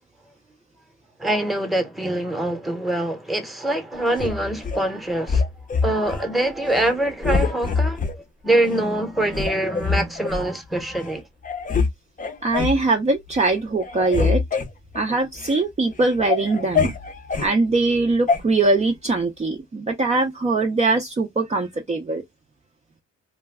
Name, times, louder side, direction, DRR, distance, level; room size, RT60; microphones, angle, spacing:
voice 1, 1.2-5.4 5.8-11.2, right 1 dB, ahead, 0.9 m, -24 dB
sound 1, 4.1-4.8 5.3-6.2 6.7-6.9 7.2-8.2 8.7-8.8 9.3-10.4 11.0-11.1 11.4-11.9 12.2-12.8 13.3-13.5 13.8-15.6 16.0-17.5 18.3-18.4, left 5 dB, 25° left, 0.6 m, -24 dB
voice 2, 12.4-14.4 14.9-16.9 17.4-22.2, right 3 dB, 25° right, 0.5 m, -22 dB
2.2 x 2.2 x 3.4 m
cardioid pair, 90°, 30 cm